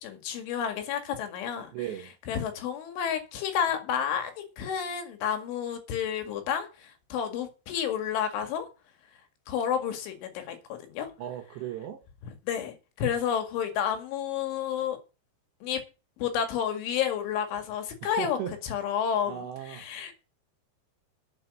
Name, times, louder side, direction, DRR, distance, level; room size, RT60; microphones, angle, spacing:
voice 1, 0.0-1.7 2.3-8.7 9.5-11.1 12.5-15.0 15.6-15.8 16.2-18.4 18.6-19.4 19.7-20.1, left 8 dB, 90° left, 4.5 m, -30 dB
voice 2, 1.7-2.1 6.4-6.5 11.2-12.0 18.0-18.5 19.3-19.8, right 10 dB, 75° right, 3.4 m, -36 dB
9.1 x 7.4 x 8.2 m
omnidirectional pair, 5.3 m